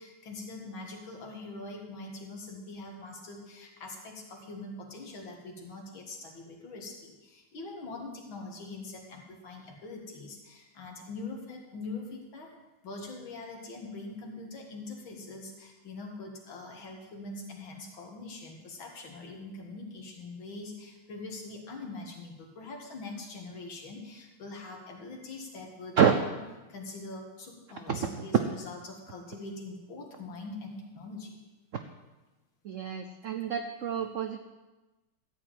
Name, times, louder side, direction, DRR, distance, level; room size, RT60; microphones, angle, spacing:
voice 1, 0.0-12.5 12.8-26.0 26.7-31.4, left 3 dB, 75° left, 1 dB, 2.6 m, -43 dB
voice 2, 27.9-28.2 32.6-34.4, right 7 dB, 85° right, 6 dB, 0.6 m, -27 dB
13.5 x 4.8 x 8.9 m, 1.1 s
omnidirectional pair, 2.2 m